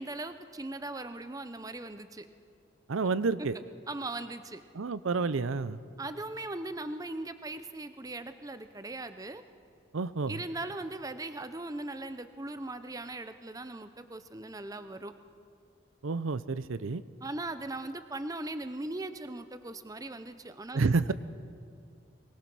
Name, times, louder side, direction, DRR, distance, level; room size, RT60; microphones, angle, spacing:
voice 1, 0.0-2.3 3.9-4.6 6.0-9.4 10.3-15.1 17.2-21.1, right 2 dB, 15° right, 10 dB, 0.6 m, -39 dB
voice 2, 2.9-3.6 4.7-5.8 9.9-10.4 16.0-17.0 20.7-21.1, right 4 dB, 80° right, 14 dB, 0.6 m, -29 dB
23.0 x 19.5 x 6.2 m, 2.3 s
head